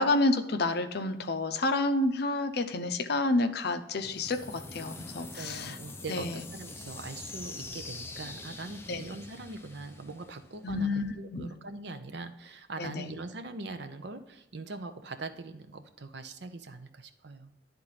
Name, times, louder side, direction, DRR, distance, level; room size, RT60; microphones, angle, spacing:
voice 1, 0.0-5.8 6.1-6.4 8.9-9.1 10.6-11.5 12.8-13.1, left 2 dB, 55° left, 7 dB, 0.6 m, -29 dB
sound 1, 3.9-10.8, left 2 dB, 15° left, 0.5 m, -44 dB
voice 2, 5.4-17.5, right 3 dB, 60° right, 8 dB, 0.7 m, -42 dB
11.0 x 3.7 x 5.7 m, 0.88 s
head